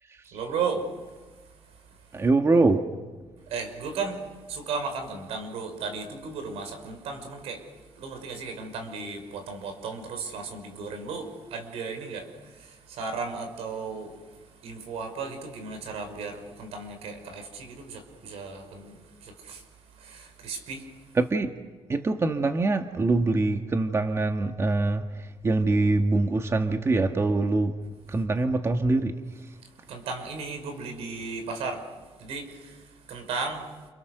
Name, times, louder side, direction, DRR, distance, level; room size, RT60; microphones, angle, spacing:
voice 1, 0.3-0.8 3.5-4.2 4.5-7.6 8.0-14.2 14.6-19.6 20.0-20.8 29.9-31.8 32.2-32.8 33.1-33.7, right 4 dB, 90° right, 5.9 m, -35 dB
voice 2, 2.1-2.9 21.1-21.6 21.9-27.8 28.1-29.2 29.4-29.5, right 3 dB, 25° right, 1.7 m, -24 dB
29.5 x 29.5 x 6.8 m
cardioid pair, 115°, 10 cm